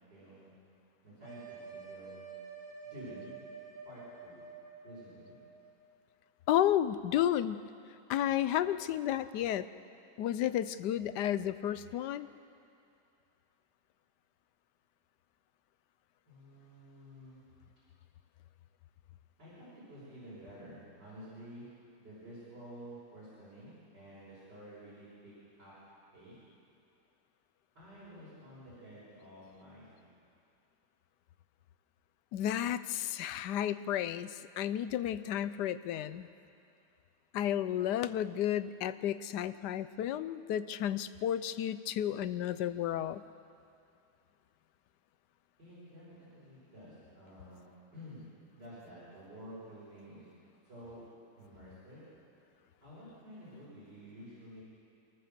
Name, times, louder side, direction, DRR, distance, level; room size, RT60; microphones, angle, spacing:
voice 1, 0.1-0.5 1.0-2.2 2.8-3.4 3.8-4.4 4.8-5.4 16.3-17.4 19.4-21.7 22.0-25.3 25.6-25.7 26.1-26.4 27.8-30.1 45.6-48.3 48.5-50.3 50.6-51.0 51.4-52.0 52.8-54.6, equal, 80° right, -11 dB, 7.2 m, -51 dB
sound 1, 1.2-5.6, right 5 dB, 25° left, 3.6 m, -49 dB
voice 2, 6.5-7.7 8.1-9.7 10.2-12.3 32.3-36.3 37.3-43.2, left 11 dB, 80° left, 14 dB, 1.2 m, -32 dB
27.0 x 13.5 x 7.4 m, 2.5 s
omnidirectional pair, 1.8 m